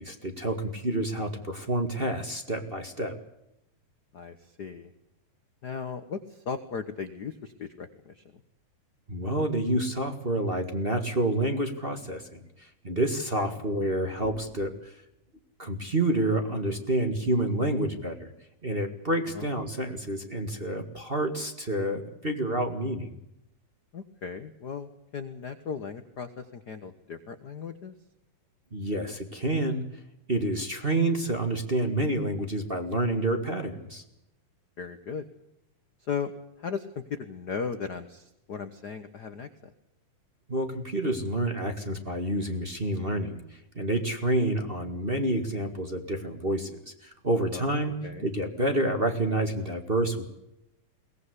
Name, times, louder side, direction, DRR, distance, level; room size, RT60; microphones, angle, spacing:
voice 1, 0.0-3.1 9.1-14.9 15.6-18.3 18.6-23.1 28.7-29.8 30.3-34.0 40.5-43.4 43.7-47.9 48.2-50.3, right 1 dB, 25° right, 4 dB, 1.5 m, -28 dB
voice 2, 4.1-4.9 5.6-8.2 13.5-13.6 19.3-19.5 23.9-27.9 34.8-35.3 36.0-36.3 36.6-39.7 47.5-47.8 48.0-48.3, left 6 dB, 65° left, 9 dB, 1.0 m, -37 dB
23.0 x 19.0 x 8.2 m, 0.85 s
omnidirectional pair, 3.7 m